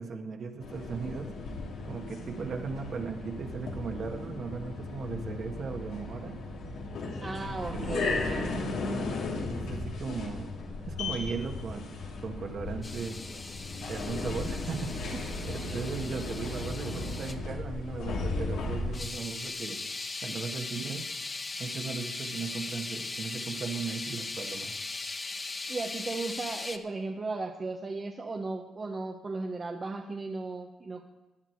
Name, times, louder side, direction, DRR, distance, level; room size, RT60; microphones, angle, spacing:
voice 1, 0.0-1.3 1.8-6.4 7.7-7.9 9.6-10.5 10.9-13.2 13.8-15.0 15.4-19.8 20.2-21.2 21.6-24.7, right 5 dB, 55° right, 3 dB, 1.7 m, -37 dB
sound 1, 0.6-19.0, left 3 dB, 80° left, 2.3 m, -36 dB
voice 2, 7.2-8.6 25.7-31.0, right 3 dB, 35° right, 2 dB, 1.0 m, -36 dB
sound 2, 12.8-17.4 18.9-26.8, left 3 dB, 30° left, 0.9 m, -39 dB
16.5 x 9.9 x 4.6 m, 1.0 s
cardioid pair, 90°, 0 cm